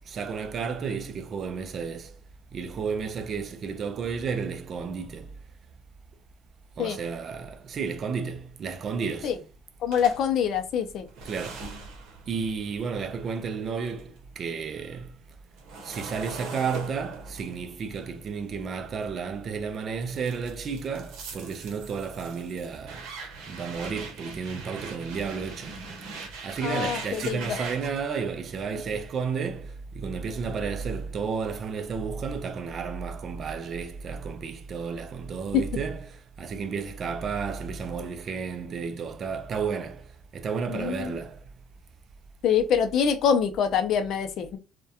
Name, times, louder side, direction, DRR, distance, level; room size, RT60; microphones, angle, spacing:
voice 1, 0.1-2.1 2.5-5.3 6.8-9.4 11.2-11.7 12.3-15.1 15.8-23.1 23.5-25.8 26.4-41.4, right 5 dB, 45° right, 0.4 m, -32 dB
voice 2, 9.8-11.1 26.6-27.6 35.5-35.6 40.7-41.1 42.4-44.6, left 7 dB, 60° left, 0.4 m, -25 dB
sound 1, 9.9-14.2 14.5-19.4 20.0-28.0, right 4 dB, 75° right, 0.7 m, -42 dB
2.2 x 2.1 x 2.7 m
cardioid pair, 115°, 0 cm